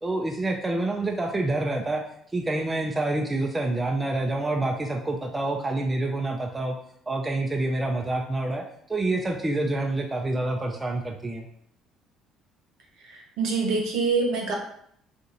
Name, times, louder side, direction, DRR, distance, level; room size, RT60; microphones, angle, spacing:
voice 1, 0.0-2.0 2.3-6.8 7.1-8.6 8.9-11.5, right 2 dB, 20° right, 1 dB, 0.5 m, -27 dB
voice 2, 13.1-14.5, right 4 dB, 70° right, 0 dB, 0.9 m, -25 dB
2.8 x 2.5 x 3.8 m, 0.67 s
supercardioid pair, 85°, 0 cm